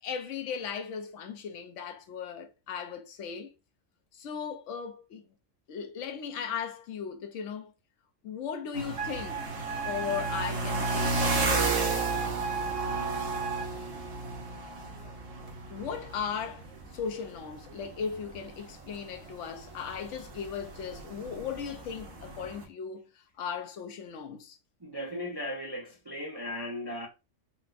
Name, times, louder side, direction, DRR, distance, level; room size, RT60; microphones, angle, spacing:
voice 1, 0.0-3.5 4.1-5.2 5.7-7.7 8.2-9.5 9.9-11.7 15.7-24.6, left 7 dB, 75° left, 0.9 m, -37 dB
sound 1, 8.7-22.6, right 3 dB, 80° right, 1.2 m, -34 dB
Wind instrument woodwind instrument, 9.0-13.7, right 5 dB, 55° right, 0.7 m, -35 dB
voice 2, 24.8-27.1, left 1 dB, 40° right, 0.3 m, -37 dB
4.2 x 2.1 x 2.4 m
omnidirectional pair, 1.3 m